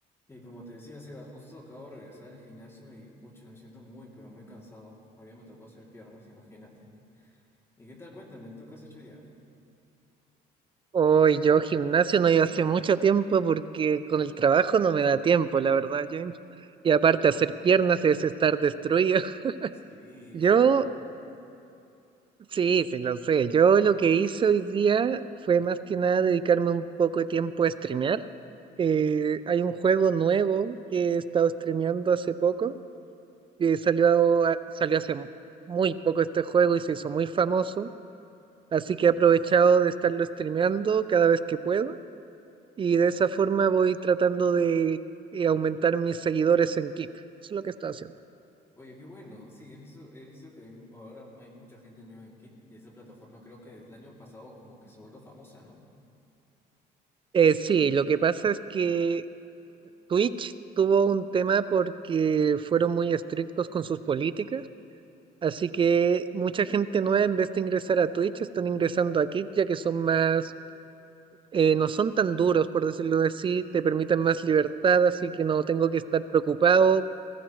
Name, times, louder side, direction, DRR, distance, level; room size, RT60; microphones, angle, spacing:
voice 1, 0.3-6.9 7.1-7.4 7.8-9.2 19.9-21.0 48.8-55.8, left 1 dB, 15° left, -3 dB, 2.8 m, -48 dB
voice 2, 10.9-16.3 16.8-19.7 20.3-20.9 22.5-25.2 25.5-28.2 28.8-32.8 33.6-35.3 35.7-37.9 38.7-42.0 42.8-45.0 45.3-47.1 47.5-48.1 57.3-59.2 60.1-64.6 65.4-70.5 71.5-77.0, right 6 dB, 30° right, 14 dB, 0.4 m, -24 dB
19.0 x 15.0 x 3.2 m, 2.7 s
cardioid pair, 110°, 17 cm